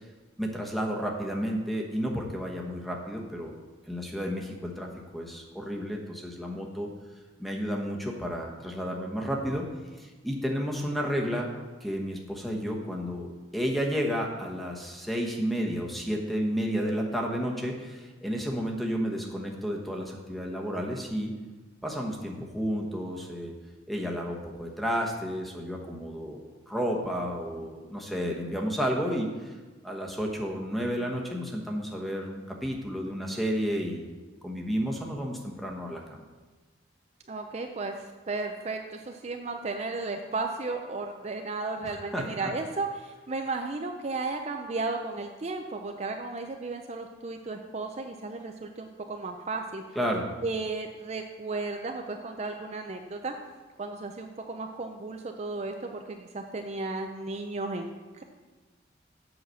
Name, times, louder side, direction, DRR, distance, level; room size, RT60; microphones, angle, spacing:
voice 1, 0.4-3.6 3.9-6.9 7.4-9.7 10.0-11.5 11.8-21.3 21.8-23.5 23.9-29.6 29.8-34.1 34.4-36.3 41.8-42.5 49.9-50.3, equal, ahead, 0 dB, 1.1 m, -31 dB
voice 2, 37.3-49.8 50.4-53.3 53.8-58.2, right 3 dB, 35° right, 4 dB, 0.5 m, -34 dB
8.0 x 5.7 x 6.3 m, 1.3 s
head